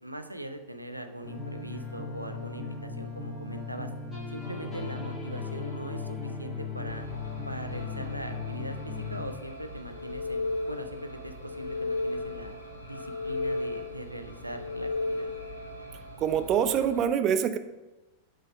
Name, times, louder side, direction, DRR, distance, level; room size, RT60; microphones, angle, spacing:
voice 1, 0.0-3.9 4.3-7.1 7.5-12.5 12.9-15.3, right 1 dB, 90° right, 7 dB, 0.5 m, -41 dB
sound 1, 1.2-9.3, left 4 dB, 20° left, 2.3 m, -37 dB
sound 2, 6.8-17.0, right 1 dB, 80° left, 1.2 m, -45 dB
sound 3, 9.9-11.1 11.4-12.6 12.9-14.1 14.5-15.6, left 3 dB, 65° left, 0.5 m, -33 dB
voice 2, 16.2-17.6, right 8 dB, 35° right, 10 dB, 0.5 m, -25 dB
7.7 x 4.0 x 5.0 m, 1.1 s
figure-of-eight pair, 90°, 0 cm